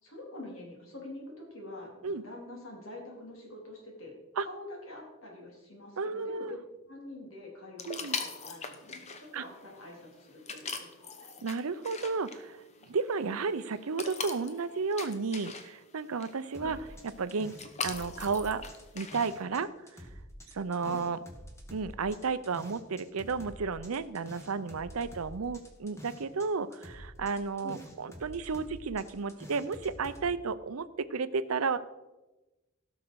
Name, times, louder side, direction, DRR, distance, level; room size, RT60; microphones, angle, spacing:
voice 1, 0.0-6.6 6.9-10.9 16.6-16.8 20.8-21.1 27.6-27.8, left 2 dB, 70° left, -2 dB, 3.8 m, -46 dB
voice 2, 6.0-6.5 7.9-8.2 9.3-9.4 11.4-12.6 12.9-16.8 17.2-17.5 17.8-18.6 18.9-19.7 20.5-21.2 21.7-31.8, right 4 dB, 85° right, 15 dB, 0.6 m, -32 dB
sound 1, 7.8-19.4, left 5 dB, 30° left, 0.9 m, -42 dB
sound 2, 16.5-19.6 19.9-26.5 26.7-30.2, equal, 15° left, 1.4 m, -48 dB
16.5 x 6.3 x 4.7 m, 1.1 s
head